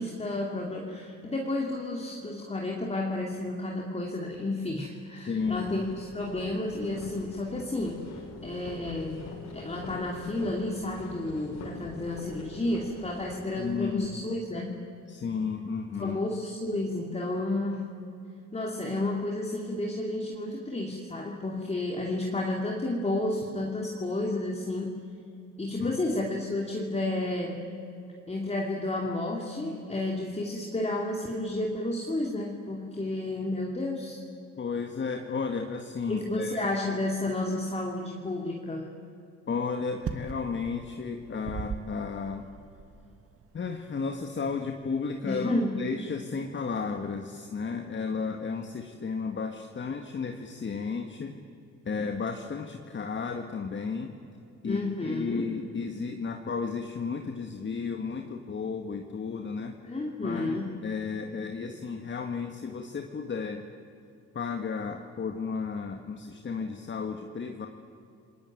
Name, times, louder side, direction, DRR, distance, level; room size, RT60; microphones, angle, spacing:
voice 1, 0.0-8.1 8.4-9.3 9.5-14.8 16.0-17.9 18.5-25.0 25.6-27.7 28.3-34.2 36.1-38.9 45.2-45.8 54.6-55.5 59.8-60.8, left 2 dB, 20° left, 0 dB, 3.0 m, -31 dB
voice 2, 5.3-5.8 13.6-14.2 15.1-16.2 25.8-26.0 34.6-36.6 39.5-42.5 43.5-51.4 51.8-54.2 54.6-59.8 60.2-63.6 64.3-67.7, left 5 dB, 40° left, 4 dB, 1.8 m, -33 dB
sound 1, 5.4-13.7, left 2 dB, 65° left, 7.1 m, -44 dB
sound 2, 39.9-45.5, right 6 dB, 50° right, 1.7 m, -40 dB
29.5 x 20.5 x 9.4 m, 2.7 s
cardioid pair, 90°, 30 cm